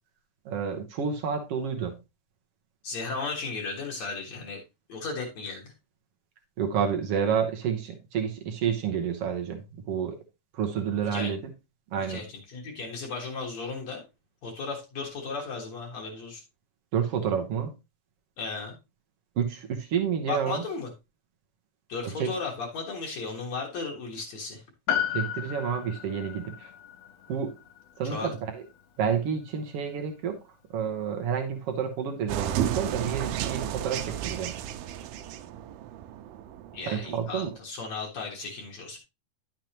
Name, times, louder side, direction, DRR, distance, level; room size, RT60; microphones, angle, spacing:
voice 1, 0.4-2.0 6.6-9.6 9.9-10.2 10.5-11.5 11.9-12.2 16.9-17.7 19.4-20.6 22.2-22.3 25.1-26.7 27.3-27.5 28.0-28.6 29.0-30.4 30.7-34.5 36.9-37.5, right 7 dB, 75° right, 5 dB, 1.4 m, -29 dB
voice 2, 2.8-4.6 4.9-5.7 11.1-11.3 12.0-14.0 14.4-16.4 18.4-18.8 20.3-20.9 21.9-24.6 28.0-28.3 36.7-39.0, left 4 dB, 55° left, -1 dB, 2.5 m, -35 dB
Piano, 24.9-29.5 29.7-29.8, left 9 dB, 85° left, 3.1 m, -34 dB
sound 1, 32.3-37.6, right 10 dB, 90° right, 2.5 m, -33 dB
10.5 x 6.7 x 2.9 m, 0.25 s
omnidirectional pair, 4.2 m